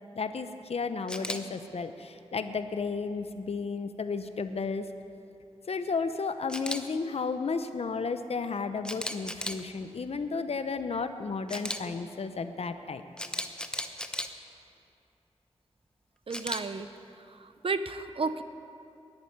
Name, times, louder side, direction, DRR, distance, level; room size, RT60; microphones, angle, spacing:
voice 1, 0.1-4.9 5.7-13.0, left 4 dB, 65° left, 9 dB, 0.6 m, -33 dB
Camera, 1.1-1.4 6.5-6.8 8.8-9.6 11.5-11.8 13.2-14.3 16.3-16.6, left 1 dB, 5° left, 0.8 m, -34 dB
voice 2, 16.3-16.9 17.3-18.4, right 4 dB, 55° right, 11 dB, 0.6 m, -32 dB
10.5 x 8.8 x 9.6 m, 2.7 s
wide cardioid pair, 75°, 11 cm